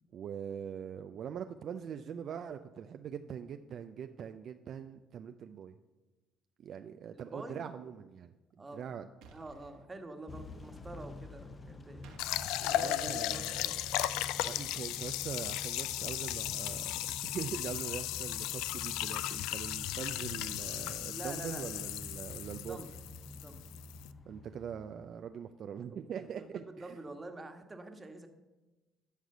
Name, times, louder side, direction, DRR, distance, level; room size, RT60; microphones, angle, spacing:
voice 1, 0.1-5.8 6.6-9.1 12.7-14.0 14.4-22.8 24.3-27.0, right 8 dB, 60° right, 8 dB, 0.4 m, -43 dB
voice 2, 7.1-7.6 8.6-8.9 9.3-12.1 12.6-13.7 21.1-21.8 22.6-22.9 23.3-23.6 26.4-28.3, right 2 dB, 25° right, 5 dB, 1.4 m, -47 dB
sound 1, 9.2-9.8 12.0-12.3, right 5 dB, 75° right, 1.4 m, -55 dB
Motor vehicle (road) / Engine starting / Accelerating revving vroom, 10.3-25.3, left 2 dB, 35° left, 0.8 m, -48 dB
sound 2, 12.2-24.1, left 14 dB, 75° left, 0.3 m, -36 dB
11.5 x 4.8 x 6.7 m, 1.1 s
hypercardioid pair, 65°, 0 cm